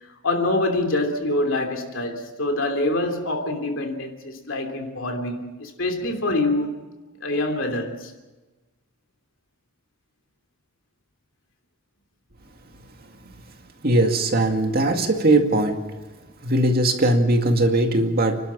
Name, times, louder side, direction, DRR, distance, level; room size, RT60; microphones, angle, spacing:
voice 1, 0.2-6.7 7.2-8.1, left 2 dB, 65° left, 3.1 m, -25 dB
voice 2, 13.8-15.8 16.4-18.4, right 1 dB, 45° right, 2.2 m, -19 dB
29.5 x 12.5 x 7.4 m
head